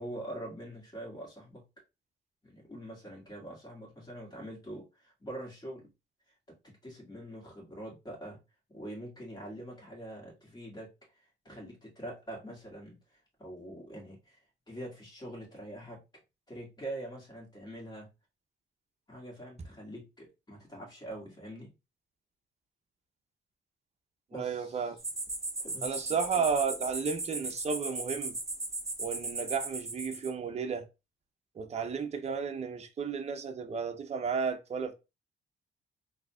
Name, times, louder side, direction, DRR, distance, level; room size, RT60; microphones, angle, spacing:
voice 1, 0.0-1.7 2.4-5.9 6.6-8.4 8.7-10.9 11.2-13.0 13.4-14.4 14.7-16.0 16.5-18.1 19.1-21.7 24.3-24.9 25.6-26.2, right 1 dB, 20° left, 2.0 m, -44 dB
voice 2, 24.3-25.0 25.8-28.4 29.0-30.9 31.6-34.9, right 6 dB, 35° right, 0.6 m, -33 dB
sound 1, 25.0-30.3, right 2 dB, 15° right, 0.9 m, -37 dB
3.8 x 2.8 x 2.3 m
cardioid pair, 90°, 20 cm